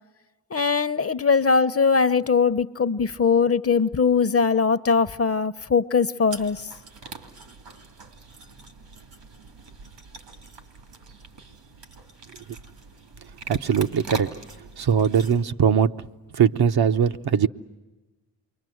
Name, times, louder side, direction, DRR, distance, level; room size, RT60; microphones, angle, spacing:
voice 1, 0.5-6.6, left 5 dB, 35° left, 0.8 m, -21 dB
sound 1, 6.3-15.4, right 4 dB, 80° right, 2.9 m, -42 dB
voice 2, 13.5-14.3 14.8-15.9 16.3-17.5, right 7 dB, 65° right, 0.9 m, -20 dB
28.5 x 23.5 x 7.9 m
cardioid pair, 50°, 41 cm